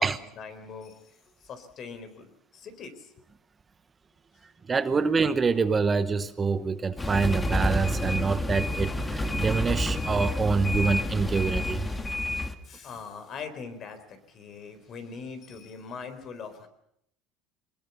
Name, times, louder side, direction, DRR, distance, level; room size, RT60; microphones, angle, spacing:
voice 1, 0.0-3.1 11.9-12.0 12.6-16.7, left 5 dB, 45° left, 9 dB, 4.0 m, -42 dB
voice 2, 4.7-11.9, right 5 dB, 25° right, 12 dB, 1.0 m, -26 dB
sound 1, 7.0-12.5, left 1 dB, 15° left, 1.8 m, -29 dB
23.0 x 20.5 x 7.1 m, 0.74 s
supercardioid pair, 115°, 0 cm